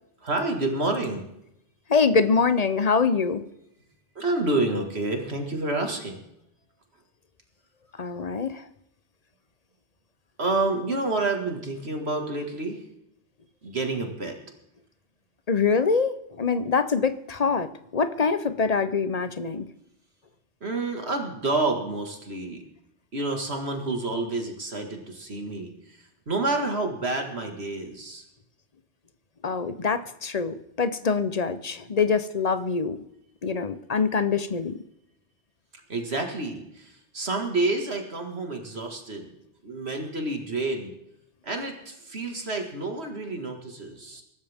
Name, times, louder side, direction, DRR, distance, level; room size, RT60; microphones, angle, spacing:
voice 1, 0.2-1.3 4.2-6.2 10.4-12.9 13.6-14.4 20.6-22.6 23.1-28.3 35.9-39.3 39.6-40.9 41.4-44.2, right 2 dB, 65° right, 3 dB, 2.3 m, -29 dB
voice 2, 1.9-3.4 8.0-8.7 15.5-19.7 29.4-33.0 33.4-34.8, left 5 dB, 40° left, 11 dB, 0.8 m, -24 dB
24.0 x 12.5 x 3.6 m, 0.81 s
omnidirectional pair, 1.2 m